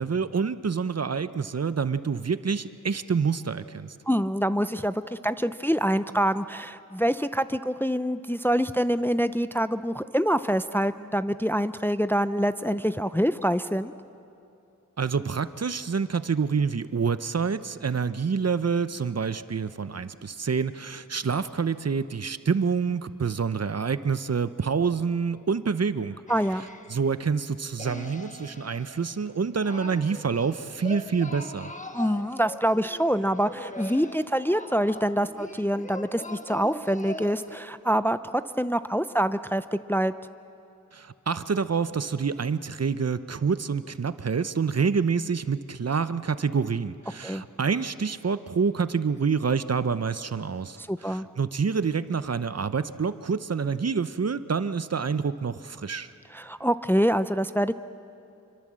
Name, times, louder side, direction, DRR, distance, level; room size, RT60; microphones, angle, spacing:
voice 1, 0.0-3.9 15.0-26.2 26.9-31.7 40.9-56.1, right 5 dB, 50° right, 13 dB, 0.8 m, -27 dB
voice 2, 4.1-13.9 26.3-26.7 31.9-38.2 38.6-40.1 47.2-47.4 50.8-51.3 56.3-57.7, equal, 5° left, 12 dB, 0.5 m, -25 dB
sound 1, 26.3-27.0 27.8-37.6, left 1 dB, 20° left, 1.4 m, -41 dB
26.5 x 24.5 x 7.6 m, 2.7 s
wide cardioid pair, 75°, 33 cm